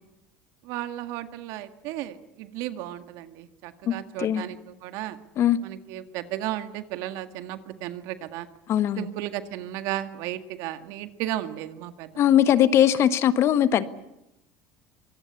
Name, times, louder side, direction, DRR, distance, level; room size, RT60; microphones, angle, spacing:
voice 1, 0.6-5.2 5.6-8.5 9.0-12.3, right 13 dB, 70° right, 10 dB, 1.9 m, -34 dB
voice 2, 8.7-9.1 12.2-13.8, left 10 dB, 50° left, 13 dB, 1.5 m, -20 dB
24.5 x 19.0 x 8.4 m, 0.89 s
supercardioid pair, 95°, 6 cm